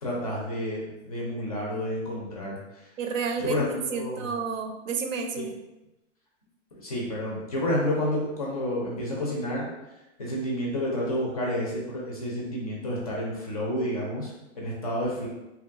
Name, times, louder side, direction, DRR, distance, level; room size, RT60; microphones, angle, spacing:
voice 1, 0.0-2.8 3.4-4.3 6.8-9.7 10.2-15.3, left 1 dB, 30° left, -3 dB, 0.4 m, -30 dB
voice 2, 3.0-5.5, right 5 dB, 80° right, 5 dB, 0.6 m, -30 dB
2.8 x 2.2 x 2.4 m, 0.98 s
hypercardioid pair, 165°, 38 cm